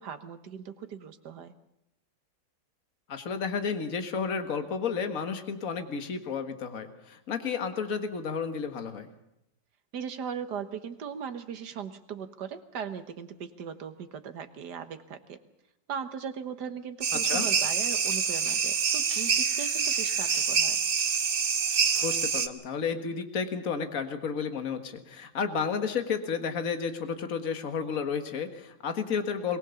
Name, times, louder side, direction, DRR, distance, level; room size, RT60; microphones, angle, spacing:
voice 1, 0.0-1.5 9.9-15.4 15.9-20.8, right 7 dB, 65° right, 9 dB, 1.8 m, -38 dB
voice 2, 3.1-9.1 17.1-17.5 22.0-29.6, left 6 dB, 50° left, 7 dB, 1.9 m, -32 dB
sound 1, 17.0-22.5, right 6 dB, 40° right, 0.9 m, -26 dB
22.5 x 19.0 x 7.0 m, 0.84 s
omnidirectional pair, 1.9 m